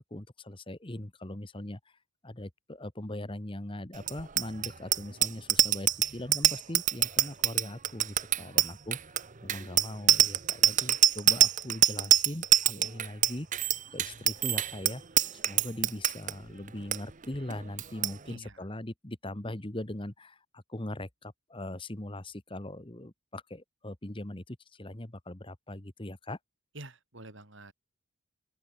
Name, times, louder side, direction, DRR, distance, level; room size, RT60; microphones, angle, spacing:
voice 1, 0.0-1.9 2.2-9.1 9.4-13.5 13.9-15.0 15.3-26.4, left 1 dB, 25° left, 1.4 m, -40 dB
Bicycle bell, 4.0-16.3 16.7-17.0 17.2-17.5 17.8-18.1, right 12 dB, 35° right, 0.8 m, -24 dB
voice 2, 26.7-27.7, right 2 dB, 55° right, 3.9 m, -47 dB
open air
head